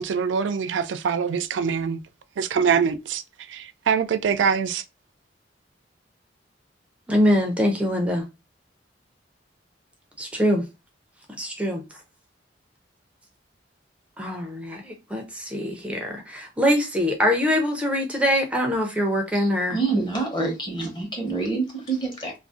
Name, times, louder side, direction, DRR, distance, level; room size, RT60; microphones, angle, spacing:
voice 1, 0.0-2.0 2.4-4.8, right 6 dB, 75° right, 0.3 m, -24 dB
voice 2, 7.1-8.2 10.2-10.7 11.4-11.8 14.2-19.8, equal, 5° right, 0.5 m, -23 dB
voice 3, 19.3-22.3, right 3 dB, 25° left, 1.0 m, -27 dB
2.5 x 2.0 x 3.6 m
head